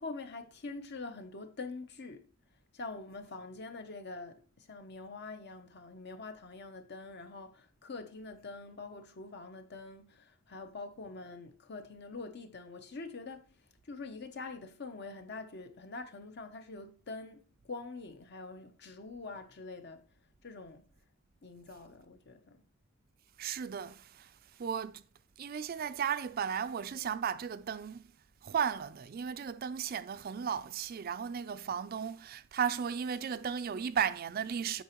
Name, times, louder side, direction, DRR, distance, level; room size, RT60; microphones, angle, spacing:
voice 1, 0.0-2.3 2.7-13.4 13.9-20.0 20.4-20.8 21.4-22.6, left 3 dB, 60° left, 0.9 m, -45 dB
voice 2, 23.4-25.0 25.4-28.1 28.4-34.8, right 7 dB, 50° right, 0.4 m, -35 dB
8.3 x 5.8 x 3.0 m
head